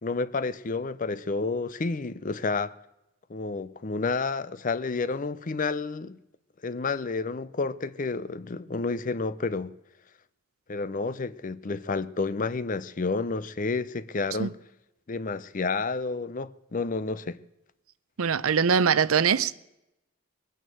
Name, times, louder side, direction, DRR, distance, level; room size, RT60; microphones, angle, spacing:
voice 1, 0.0-2.7 3.3-6.2 6.6-9.7 10.7-14.6 15.1-17.4, left 4 dB, 35° left, 0.5 m, -30 dB
voice 2, 18.2-19.5, right 6 dB, 75° right, 0.6 m, -22 dB
20.5 x 9.3 x 7.7 m
head